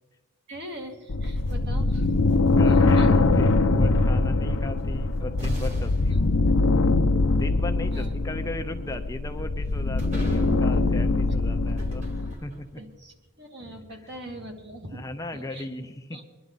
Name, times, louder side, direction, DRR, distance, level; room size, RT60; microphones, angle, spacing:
voice 1, 0.5-2.2 2.7-3.2 6.1-6.2 7.9-8.1 11.5-11.7 12.8-15.7 16.1-16.2, right 1 dB, 50° right, 2 dB, 2.2 m, -41 dB
sound 1, 1.1-12.3, left 3 dB, 75° left, 0.7 m, -22 dB
sound 2, 1.2-3.6 4.8-4.9 5.4-12.9, equal, 30° right, 2.7 m, -42 dB
voice 2, 2.4-6.3 7.3-12.1 12.4-12.7 14.9-16.2, left 2 dB, 15° left, 5 dB, 0.6 m, -36 dB
23.0 x 11.0 x 4.0 m, 1.2 s
head